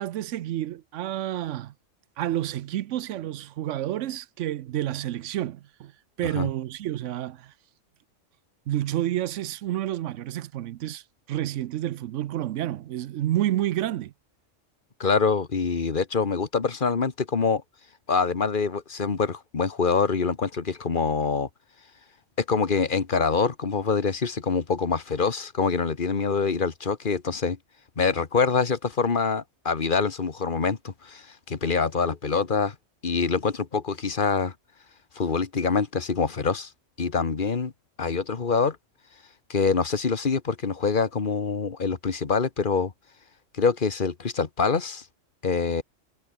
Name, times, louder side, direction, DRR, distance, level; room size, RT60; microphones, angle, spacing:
voice 1, 0.0-1.7 2.2-5.9 6.2-7.5 8.7-11.0 11.3-14.1, right 13 dB, 75° right, 0.9 m, -29 dB
voice 2, 15.0-17.6 18.1-21.5 22.4-27.6 28.0-32.7 33.0-34.5 35.1-36.7 37.0-37.7 38.0-38.8 39.5-42.9 43.5-45.0 45.4-45.8, left 5 dB, 40° left, 1.5 m, -25 dB
omnidirectional pair, 1.3 m